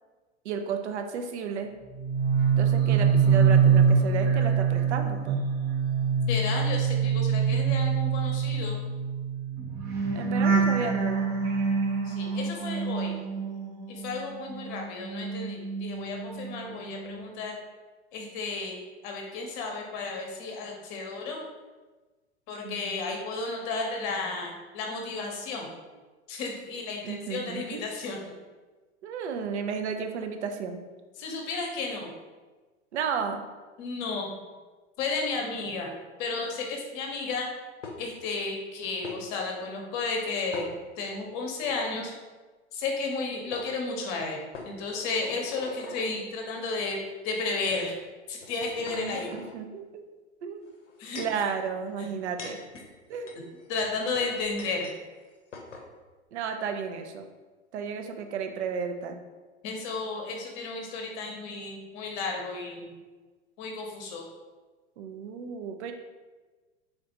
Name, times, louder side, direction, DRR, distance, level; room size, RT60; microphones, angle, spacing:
voice 1, 0.4-1.7 2.6-5.4 10.1-11.3 22.6-23.1 27.0-27.8 29.0-30.8 31.3-31.4 32.9-33.4 48.9-50.0 50.4-50.7 51.1-52.6 53.1-53.3 56.3-57.2 57.7-59.2 65.0-65.9, right 6 dB, 70° right, 6 dB, 0.5 m, -33 dB
sound 1, 1.9-14.2 14.5-16.6 16.9-17.2, right 6 dB, 30° right, 0.6 m, -25 dB
voice 2, 6.3-8.8 12.0-13.1 13.9-17.6 18.1-21.4 22.5-25.7 26.3-28.2 31.2-32.1 33.8-34.3 35.0-35.9 36.2-37.5 38.0-42.1 42.7-47.0 47.2-48.0 48.3-49.3 51.0-51.2 52.0-52.1 53.7-54.9 59.6-63.0 63.6-64.2, left 3 dB, 45° left, 1 dB, 0.8 m, -33 dB
sound 2, 37.8-38.3 39.0-39.2 40.5-41.2 41.6-41.8 43.1-43.2 43.5-43.7 44.5-46.1 46.9-47.1 47.7-47.8 48.4-49.5 50.7-51.4 52.1-55.0 55.2-55.3 55.5-55.9, left 3 dB, 85° left, 0.6 m, -43 dB
3.6 x 2.4 x 2.7 m, 1.3 s
figure-of-eight pair, 90°, 35 cm